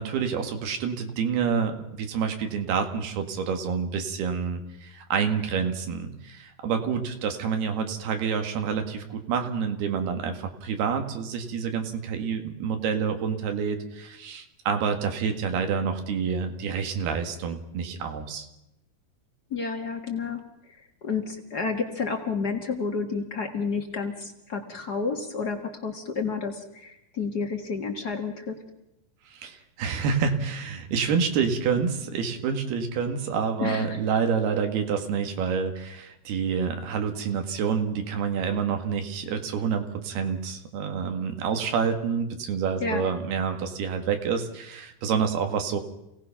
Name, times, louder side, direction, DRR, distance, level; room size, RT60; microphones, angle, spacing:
voice 1, 0.0-18.5 29.3-45.8, right 6 dB, 85° right, 6 dB, 3.9 m, -28 dB
voice 2, 19.5-20.4 21.0-28.6 33.6-34.0 42.8-43.0, left 5 dB, 45° left, 4 dB, 1.3 m, -30 dB
28.5 x 18.0 x 5.9 m, 0.85 s
omnidirectional pair, 4.4 m